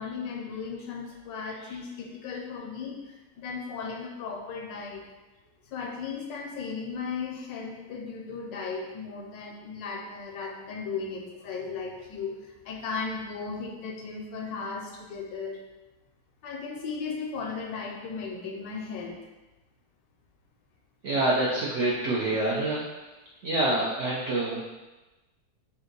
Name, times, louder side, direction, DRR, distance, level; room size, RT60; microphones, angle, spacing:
voice 1, 0.0-3.0 3.4-5.0 5.7-15.6 16.4-19.2, left 5 dB, 85° left, 1 dB, 1.3 m, -36 dB
voice 2, 21.0-22.8 23.4-24.6, right 2 dB, 65° right, -6 dB, 0.7 m, -26 dB
3.4 x 2.7 x 3.9 m, 1.1 s
omnidirectional pair, 1.9 m